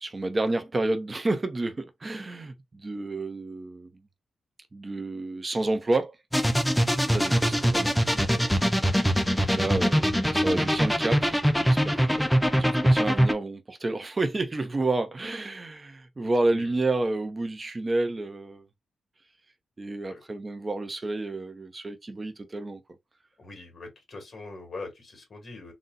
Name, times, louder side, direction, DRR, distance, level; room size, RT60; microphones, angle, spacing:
voice 1, 0.0-3.9 4.7-6.2 7.0-18.6 19.8-22.8, right 2 dB, 25° right, 0.8 m, -30 dB
sound 1, 6.3-13.3, equal, 5° left, 0.6 m, -23 dB
voice 2, 23.4-25.7, left 3 dB, 45° left, 2.5 m, -43 dB
3.9 x 2.3 x 4.0 m
cardioid pair, 110°, 0 cm